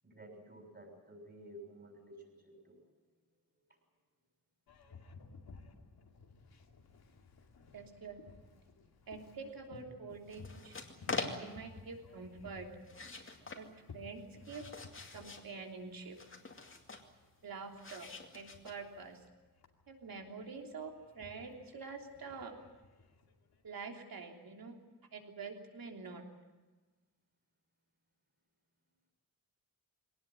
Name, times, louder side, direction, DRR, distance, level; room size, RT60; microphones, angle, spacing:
voice 1, 0.0-2.8 15.3-15.4, right 1 dB, 30° right, 1 dB, 6.5 m, -53 dB
Boat Water vehicle, 4.7-23.7, left 4 dB, 80° left, 2.5 m, -58 dB
voice 2, 7.7-8.5 9.1-10.8 11.2-12.7 13.5-13.7 13.9-14.6 15.1-16.2 17.4-18.1 18.3-19.2 19.9-22.6 23.6-24.7 25.1-26.2, right 4 dB, 70° right, 2 dB, 3.3 m, -46 dB
sound 1, 10.3-11.7 12.8-13.6 14.2-15.5 16.1-17.1 17.8-19.0, left 3 dB, 35° left, 2.4 m, -43 dB
23.5 x 18.5 x 9.5 m, 1.3 s
wide cardioid pair, 165°, 37 cm